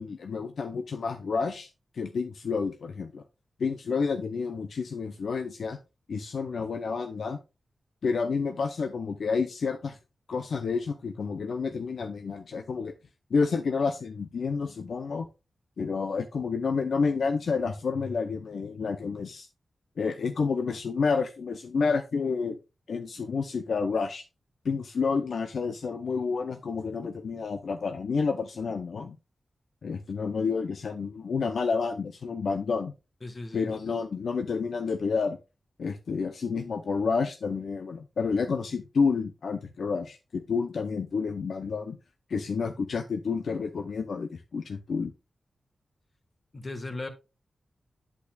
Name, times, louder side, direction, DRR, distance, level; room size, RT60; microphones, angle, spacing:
voice 1, 0.0-1.7 1.9-3.2 3.6-5.8 6.1-7.4 8.0-10.0 10.3-12.9 13.3-15.3 15.8-19.5 20.0-22.6 22.9-24.2 24.6-29.2 29.8-32.9 33.5-35.4 35.8-42.0 42.3-45.1, left 5 dB, 75° left, 0.6 m, -29 dB
voice 2, 33.2-33.7 46.5-47.1, left 2 dB, 40° left, 1.4 m, -37 dB
8.3 x 8.3 x 2.3 m
cardioid pair, 65°, 0 cm